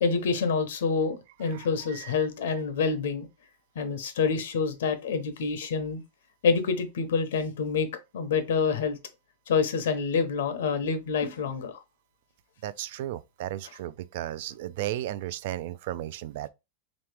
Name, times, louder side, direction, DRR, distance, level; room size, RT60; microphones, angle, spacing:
voice 1, 0.0-3.3 3.7-6.0 6.4-7.9 8.1-9.0 9.5-11.8, left 5 dB, 85° left, 0.9 m, -27 dB
voice 2, 1.5-2.3 12.6-16.5, right 13 dB, 60° right, 0.3 m, -35 dB
3.8 x 3.1 x 3.3 m
supercardioid pair, 160°, 0 cm